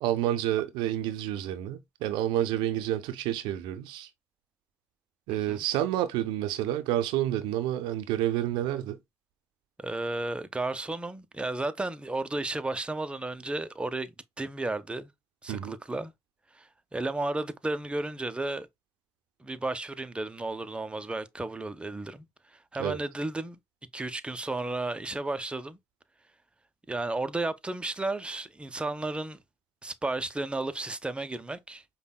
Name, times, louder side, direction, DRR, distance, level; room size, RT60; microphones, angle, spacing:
voice 1, 0.0-4.1 5.3-9.0 15.5-15.7 22.8-23.0, right 12 dB, 85° right, 0.4 m, -29 dB
voice 2, 5.3-5.6 9.8-15.1 15.4-16.1 16.5-18.7 19.4-23.6 23.9-25.8 26.9-29.4 29.8-31.8, right 2 dB, 15° right, 0.5 m, -33 dB
5.1 x 2.1 x 2.2 m
supercardioid pair, 60°, 8 cm